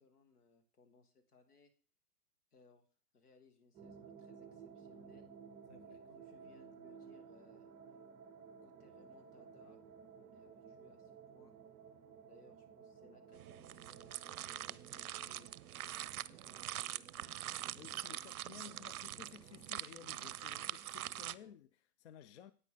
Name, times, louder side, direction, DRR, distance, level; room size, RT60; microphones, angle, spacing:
voice 1, 0.0-1.7 2.5-2.9 3.1-5.3 5.9-7.7 8.6-9.8 10.2-11.5 12.3-17.3 17.9-19.0, left 4 dB, 75° left, 2.1 m, -66 dB
sound 1, 3.7-21.5, right 6 dB, 15° right, 0.7 m, -57 dB
voice 2, 5.7-6.0 17.8-22.5, left 10 dB, 50° left, 0.5 m, -56 dB
sound 2, 13.3-21.3, right 13 dB, 70° right, 0.5 m, -44 dB
9.6 x 8.8 x 3.8 m
hypercardioid pair, 125°, 46 cm